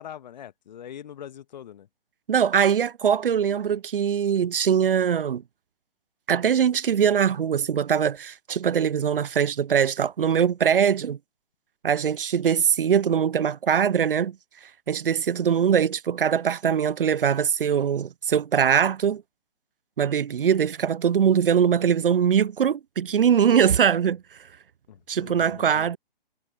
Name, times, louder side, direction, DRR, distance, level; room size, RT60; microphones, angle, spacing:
voice 1, 0.0-1.9 24.9-25.9, left 10 dB, 50° left, 1.6 m, -42 dB
voice 2, 2.3-5.4 6.3-11.2 11.8-14.4 14.9-19.2 20.0-24.2 25.1-26.0, right 8 dB, 65° right, 0.6 m, -22 dB
figure-of-eight pair, 130°, 29 cm